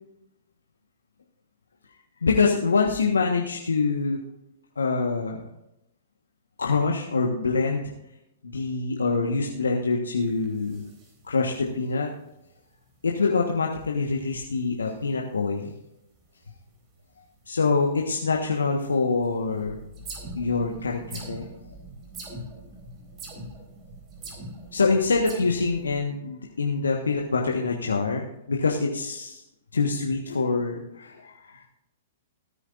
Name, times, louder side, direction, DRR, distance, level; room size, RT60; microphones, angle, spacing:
voice 1, 2.2-4.2 4.8-5.4 6.6-7.8 8.4-10.8 11.2-12.1 13.0-15.7 17.5-19.8 20.3-21.5 24.7-29.4 29.7-31.6, left 4 dB, 80° left, 1 dB, 1.4 m, -25 dB
sound 1, 10.2-12.5 12.8-13.0 13.2-13.3 13.5-13.9 14.2-15.6 16.0-18.9 19.2-26.0, right 2 dB, 30° right, 4.3 m, -43 dB
17.5 x 9.9 x 2.6 m, 0.83 s
figure-of-eight pair, 115°, 0 cm